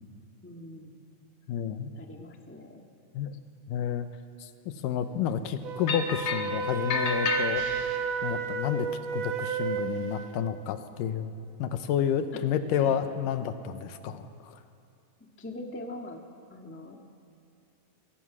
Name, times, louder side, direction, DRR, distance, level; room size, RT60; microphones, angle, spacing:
voice 1, 0.4-1.0 1.9-2.8 12.3-12.4 12.8-13.0 15.4-16.2 16.5-17.0, left 1 dB, 15° left, 2 dB, 0.5 m, -42 dB
voice 2, 1.5-1.9 3.1-3.4 3.7-4.1 4.4-7.6 8.2-8.9 9.1-11.3 11.6-14.6, left 8 dB, 90° left, 10 dB, 2.6 m, -30 dB
Wind instrument woodwind instrument, 5.6-10.4, right 5 dB, 75° right, 2.4 m, -32 dB
sound 1, 5.9-6.5 6.9-8.0, left 5 dB, 55° left, 2.4 m, -31 dB
27.5 x 17.5 x 6.2 m, 2.4 s
omnidirectional pair, 3.8 m